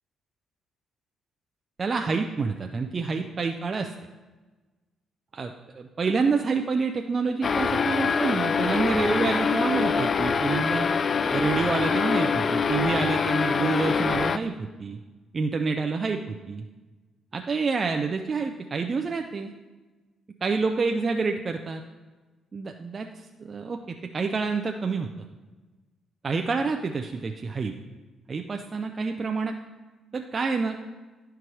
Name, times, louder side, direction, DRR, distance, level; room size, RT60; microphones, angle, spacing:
voice 1, 1.8-3.9 5.3-10.9 11.3-15.0 15.3-16.6 17.3-19.5 20.4-21.8 22.5-25.1 26.2-27.7 28.3-29.5 30.1-31.0, right 4 dB, 35° right, 4 dB, 0.5 m, -28 dB
sound 1, 7.4-14.4, left 5 dB, 45° left, 0.3 m, -24 dB
11.0 x 4.6 x 4.7 m, 1.2 s
cardioid pair, 90°, 0 cm